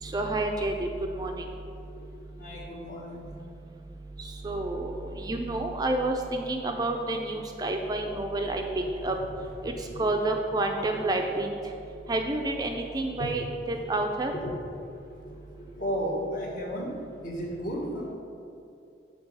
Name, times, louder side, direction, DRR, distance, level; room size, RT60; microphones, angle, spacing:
voice 1, 0.0-1.5 4.2-9.2 9.6-11.6 12.1-14.3, right 2 dB, 20° right, 3 dB, 0.4 m, -29 dB
voice 2, 2.4-3.3 9.9-10.0 10.8-11.0 13.8-13.9 14.3-14.5 15.2-16.9 17.2-18.1, equal, 50° left, -4 dB, 1.4 m, -34 dB
6.8 x 3.9 x 5.4 m, 2.6 s
head